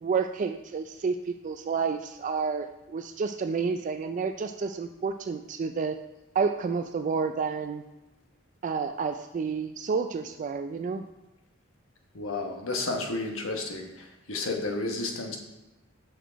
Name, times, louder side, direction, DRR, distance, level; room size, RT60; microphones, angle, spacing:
voice 1, 0.0-6.0 6.4-7.8 8.6-11.0, right 5 dB, 40° right, 7 dB, 0.3 m, -30 dB
voice 2, 12.1-15.4, left 3 dB, 75° left, 3 dB, 1.2 m, -32 dB
6.4 x 6.0 x 4.6 m, 0.99 s
head